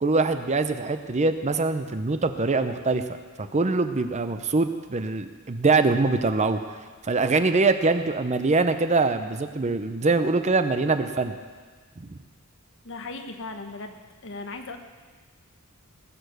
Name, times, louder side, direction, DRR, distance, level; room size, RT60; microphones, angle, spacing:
voice 1, 0.0-3.0 3.4-6.8 7.0-11.4 12.0-12.2, right 3 dB, 30° right, 9 dB, 0.6 m, -23 dB
voice 2, 12.8-14.0 14.2-14.8, left 3 dB, 60° left, 6 dB, 1.1 m, -37 dB
19.0 x 7.0 x 6.6 m, 1.5 s
head